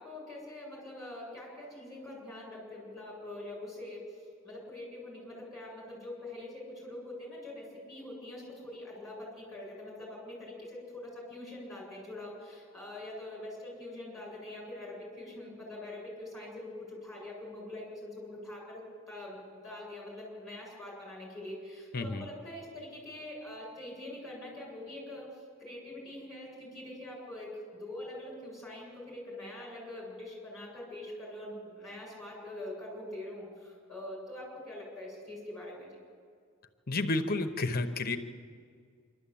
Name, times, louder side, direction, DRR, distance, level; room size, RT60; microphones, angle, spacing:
voice 1, 0.0-4.2 4.4-35.9, left 1 dB, ahead, -4 dB, 7.8 m, -44 dB
voice 2, 21.9-22.2 36.9-38.2, left 2 dB, 45° left, 8 dB, 0.9 m, -31 dB
25.5 x 12.5 x 8.5 m, 2.1 s
head